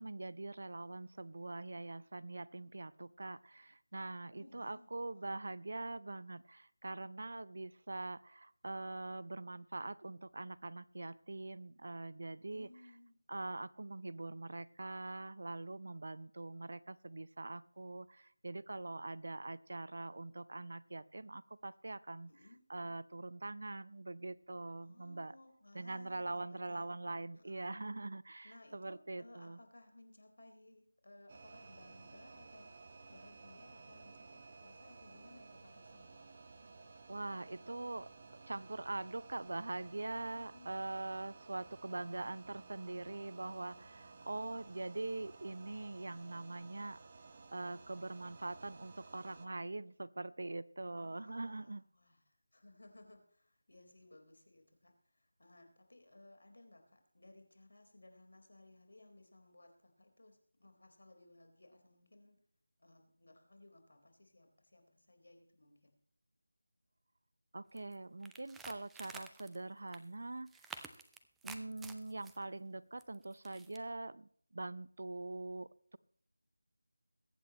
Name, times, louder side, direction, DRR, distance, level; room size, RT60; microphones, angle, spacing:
voice 1, 0.0-12.7 13.3-22.3 22.7-25.3 25.7-29.6 37.1-38.1 38.5-47.0 47.5-51.8 67.5-70.7 71.4-76.0, right 2 dB, 60° right, 19 dB, 0.6 m, -43 dB
voice 2, 4.3-5.4 12.5-13.2 22.3-22.6 24.8-26.9 27.3-27.9 28.4-36.2 40.3-40.8 44.4-44.8 50.9-62.4 62.8-66.0, left 1 dB, 70° left, 5 dB, 4.1 m, -61 dB
sound 1, 31.3-49.5, right 3 dB, 35° right, 1.2 m, -56 dB
Bass guitar, 42.0-48.2, right 3 dB, 25° left, 2.1 m, -69 dB
sound 2, 67.8-67.9 68.2-69.6 69.9-70.0 70.5-72.4 73.0-73.8, right 5 dB, 5° right, 0.5 m, -51 dB
22.5 x 8.7 x 3.0 m, 0.63 s
figure-of-eight pair, 170°, 0 cm